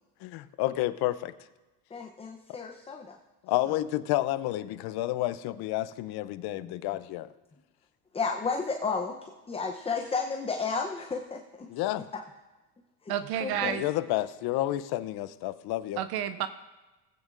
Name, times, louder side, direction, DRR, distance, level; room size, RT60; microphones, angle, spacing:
voice 1, 0.2-1.3 2.5-2.6 3.4-7.3 11.7-12.1 13.5-16.0, left 15 dB, 55° left, 15 dB, 0.7 m, -30 dB
voice 2, 1.9-3.2 3.7-3.8 6.6-6.7 8.1-11.7 12.1-12.2 13.0-13.1 13.4-13.8, left 4 dB, 10° left, 4 dB, 0.7 m, -33 dB
voice 3, 13.1-13.8 16.0-16.5, right 10 dB, 55° right, 12 dB, 0.7 m, -30 dB
19.0 x 8.8 x 2.5 m, 1.1 s
supercardioid pair, 90°, 47 cm